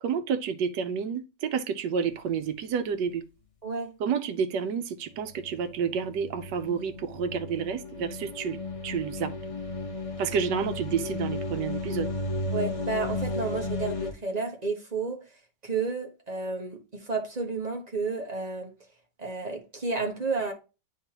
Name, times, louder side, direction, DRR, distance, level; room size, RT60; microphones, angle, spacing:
voice 1, 0.0-3.2 4.0-8.6 8.8-9.3 10.2-12.1, right 6 dB, 80° right, 1.4 m, -30 dB
voice 2, 3.6-3.9 12.5-15.2 15.6-18.7 19.2-20.5, right 4 dB, 25° right, 1.3 m, -31 dB
sound 1, 5.1-14.1, left 2 dB, 35° left, 0.5 m, -34 dB
9.3 x 3.6 x 2.9 m
omnidirectional pair, 1.8 m